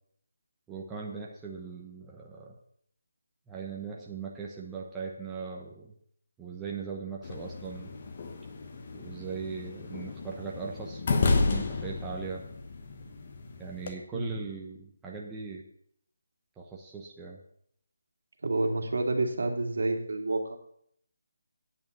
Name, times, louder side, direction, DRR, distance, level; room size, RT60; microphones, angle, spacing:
voice 1, 0.7-2.5 3.5-5.9 6.4-7.9 8.9-12.4 13.6-15.6 16.6-17.4, right 5 dB, 5° right, -3 dB, 0.8 m, -39 dB
sound 1, 7.2-13.9, left 3 dB, 35° left, 1.1 m, -32 dB
voice 2, 18.4-20.6, right 2 dB, 70° right, 4 dB, 2.1 m, -29 dB
9.2 x 5.7 x 7.9 m, 0.66 s
figure-of-eight pair, 170°, 0 cm